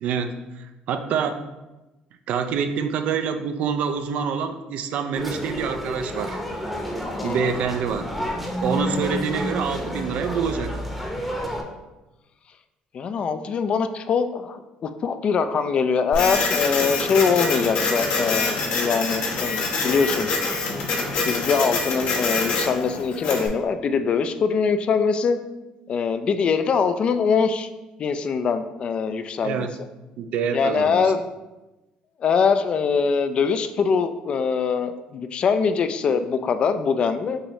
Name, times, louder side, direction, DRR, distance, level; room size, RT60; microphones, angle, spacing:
voice 1, 0.0-1.4 2.3-6.4 7.2-8.1 8.6-10.8 29.4-29.8 30.2-31.1, right 6 dB, 65° right, 9 dB, 0.4 m, -26 dB
sound 1, 5.1-11.6, equal, ahead, 0.8 m, -29 dB
voice 2, 7.2-7.5 12.9-20.3 20.9-21.0 21.3-25.4 25.9-27.7 28.0-29.7 30.5-31.3 32.2-37.4, left 5 dB, 45° left, 9 dB, 0.3 m, -23 dB
Printer, 16.1-23.5, left 3 dB, 80° left, 1.0 m, -25 dB
6.3 x 2.7 x 3.0 m, 1.0 s
cardioid pair, 110°, 2 cm